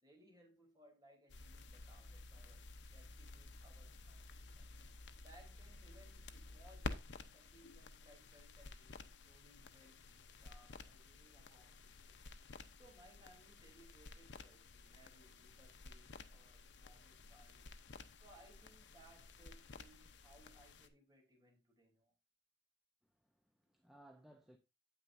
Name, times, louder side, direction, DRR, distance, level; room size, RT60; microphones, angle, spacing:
voice 1, 0.0-4.3 4.5-4.7 5.2-7.0 7.3-12.3 12.8-17.7 18.2-22.1, right 1 dB, 20° right, 3.4 m, -66 dB
sound 1, 1.3-20.9, left 3 dB, 75° left, 0.8 m, -53 dB
voice 2, 23.0-24.6, right 1 dB, ahead, 0.8 m, -63 dB
9.2 x 8.3 x 2.6 m
head